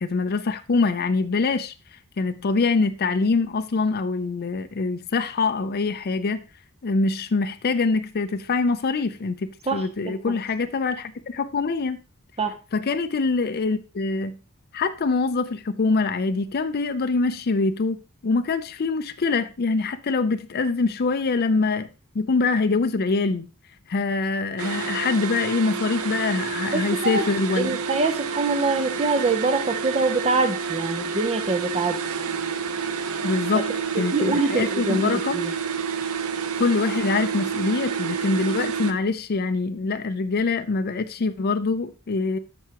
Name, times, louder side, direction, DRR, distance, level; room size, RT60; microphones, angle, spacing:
voice 1, 0.0-6.4 6.8-12.0 12.7-14.4 14.7-21.9 22.1-23.5 23.9-27.8 33.2-33.7 34.0-35.4 36.6-42.4, left 4 dB, 45° left, 0.5 m, -24 dB
voice 2, 9.7-10.4 12.4-12.5 26.7-27.2 27.6-32.0 33.5-33.6 34.1-35.5, right 3 dB, 30° right, 0.6 m, -24 dB
sound 1, 24.6-38.9, right 6 dB, 80° right, 0.7 m, -29 dB
13.0 x 4.7 x 2.9 m
head